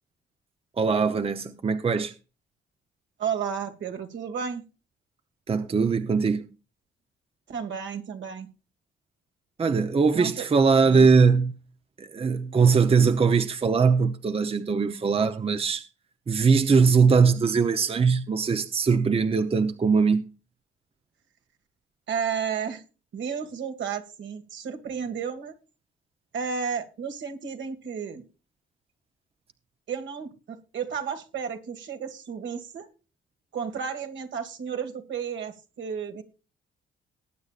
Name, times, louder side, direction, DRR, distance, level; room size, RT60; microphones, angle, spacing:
voice 1, 0.8-2.1 5.5-6.5 9.6-11.5 12.0-15.9 16.3-20.3, right 5 dB, 30° right, 0.8 m, -21 dB
voice 2, 3.2-4.6 7.5-8.5 10.1-10.5 10.8-11.1 22.1-22.8 23.1-25.5 26.3-28.2 29.9-32.9 33.5-36.2, right 7 dB, 70° right, 2.1 m, -32 dB
19.5 x 8.8 x 2.5 m
cardioid pair, 90°, 20 cm